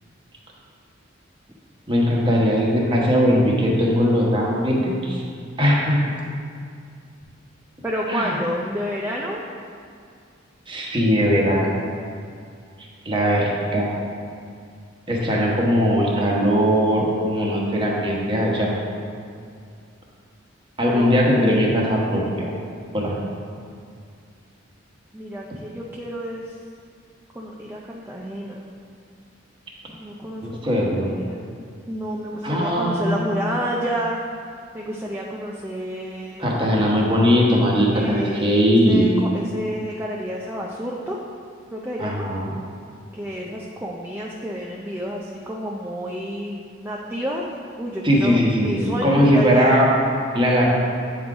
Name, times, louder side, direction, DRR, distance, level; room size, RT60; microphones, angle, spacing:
voice 1, 1.9-5.2 5.6-6.0 8.1-8.3 10.7-11.7 13.0-13.9 15.1-18.7 20.8-22.5 22.9-23.2 30.4-31.1 32.4-33.2 36.4-39.1 42.0-42.5 48.0-49.9 50.3-50.7, equal, 25° right, -3 dB, 1.1 m, -19 dB
voice 2, 7.8-9.4 20.9-21.1 25.1-26.6 27.3-28.6 29.9-30.7 31.1-31.4 31.9-34.2 34.7-36.5 37.8-41.2 41.7-42.3 43.1-47.4 47.8-49.8, equal, 10° right, -3 dB, 0.4 m, -30 dB
8.7 x 3.8 x 4.8 m, 2.3 s
head